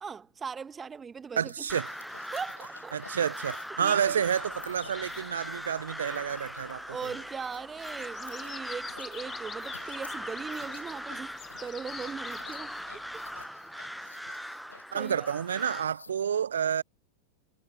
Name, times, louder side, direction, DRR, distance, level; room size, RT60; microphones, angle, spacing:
voice 1, 0.0-1.5 2.3-3.0 3.8-4.1 6.9-12.8 13.1-13.2 14.4-14.5 14.9-15.3, right 6 dB, 15° right, 1.4 m, -39 dB
sound 1, 1.4-16.1, left 4 dB, 75° left, 5.9 m, -53 dB
voice 2, 1.4-1.9 2.9-7.1 14.9-16.8, right 8 dB, 65° right, 0.3 m, -29 dB
Crow, 1.7-15.9, equal, ahead, 0.6 m, -40 dB
sound 2, 4.0-13.5, left 8 dB, 25° left, 1.3 m, -49 dB
figure-of-eight pair, 90°, 0 cm